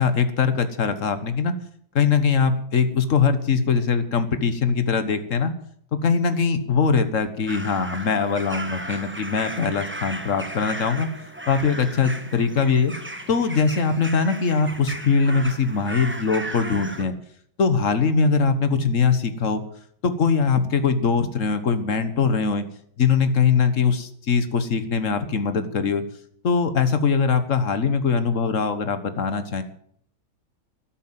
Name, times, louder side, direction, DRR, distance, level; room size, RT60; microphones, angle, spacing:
voice 1, 0.0-1.5 1.9-5.5 5.9-11.1 11.5-12.9 13.3-17.1 17.6-19.6 20.0-22.7 23.0-26.0 26.4-29.6, left 5 dB, 45° left, 10 dB, 1.5 m, -21 dB
sound 1, 7.5-17.0, right 1 dB, 10° right, 0.9 m, -36 dB
13.0 x 11.5 x 7.5 m, 0.62 s
omnidirectional pair, 2.2 m